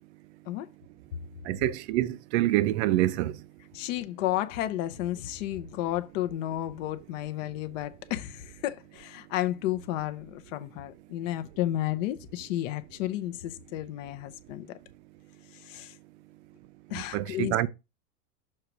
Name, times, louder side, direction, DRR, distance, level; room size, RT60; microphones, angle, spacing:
voice 1, 1.4-3.5 16.9-17.7, right 15 dB, 50° right, 0.5 m, -26 dB
voice 2, 3.7-14.8 15.6-15.9 16.9-17.7, left 14 dB, 55° left, 0.7 m, -32 dB
6.5 x 3.0 x 5.7 m
supercardioid pair, 160°, 45 cm